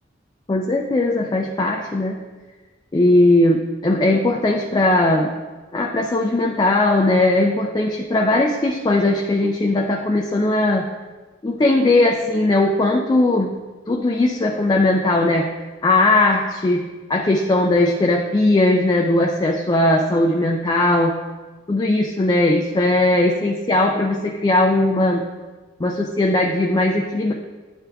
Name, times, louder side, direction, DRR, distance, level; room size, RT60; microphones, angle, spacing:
voice 1, 0.5-2.2 2.9-5.3 5.7-10.9 11.4-13.5 13.9-15.5 15.8-21.1 21.7-25.3 25.8-27.3, left 2 dB, 20° left, 1 dB, 0.4 m, -18 dB
10.0 x 3.4 x 3.4 m, 1.3 s
head